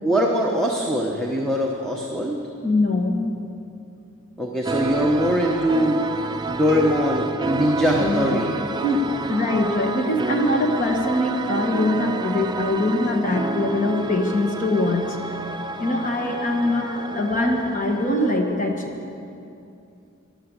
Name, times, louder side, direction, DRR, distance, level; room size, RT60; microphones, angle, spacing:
voice 1, 0.0-2.4 4.4-6.0 6.5-8.6, equal, 5° left, -1 dB, 1.0 m, -22 dB
voice 2, 2.6-3.3 8.0-8.4 8.8-15.2 15.7-18.9, left 1 dB, 40° left, 2 dB, 1.3 m, -23 dB
sound 1, 4.6-18.4, right 3 dB, 20° right, 0.5 m, -30 dB
13.5 x 11.5 x 8.1 m, 2.6 s
head